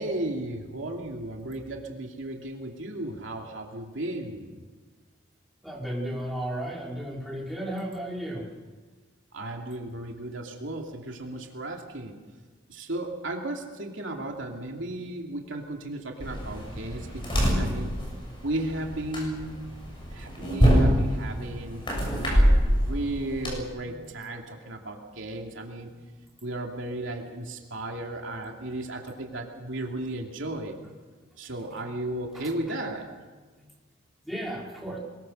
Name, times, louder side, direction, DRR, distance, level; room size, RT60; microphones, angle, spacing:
voice 1, 0.0-4.6 9.3-12.2 12.7-17.9 18.4-19.6 20.1-21.8 22.2-25.9 26.4-30.8 31.4-33.1, right 1 dB, 75° right, 2 dB, 2.7 m, -35 dB
voice 2, 5.6-8.5 32.3-32.5 34.2-35.0, right 1 dB, ahead, -3 dB, 4.4 m, -34 dB
sound 1, 16.2-23.5, equal, 25° left, 7.0 m, -25 dB
23.0 x 21.5 x 6.5 m, 1.4 s
head